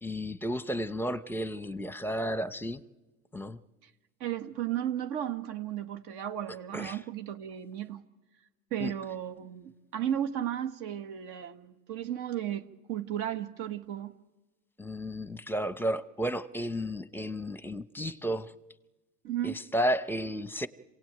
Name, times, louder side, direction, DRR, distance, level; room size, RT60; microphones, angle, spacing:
voice 1, 0.0-2.8 3.3-3.6 6.7-7.0 8.8-8.9 14.8-18.5 19.4-20.7, equal, 5° left, 0.9 m, -32 dB
voice 2, 4.2-8.0 8.7-14.1 19.2-19.6, right 10 dB, 60° right, 1.8 m, -34 dB
26.0 x 18.0 x 9.0 m
supercardioid pair, 95°, 43 cm